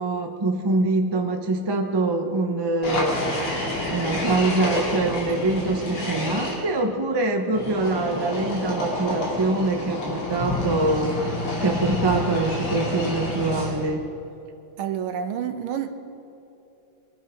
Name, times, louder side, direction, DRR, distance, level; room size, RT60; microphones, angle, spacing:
voice 1, 0.0-3.2 3.9-11.1 11.6-14.0, right 2 dB, 35° right, 4 dB, 0.4 m, -24 dB
sound 1, 2.8-6.5 7.5-13.9, left 2 dB, 80° left, 3.7 m, -28 dB
voice 2, 14.8-15.9, right 9 dB, 80° right, 8 dB, 1.8 m, -28 dB
23.0 x 10.5 x 5.1 m, 2.8 s
omnidirectional pair, 2.4 m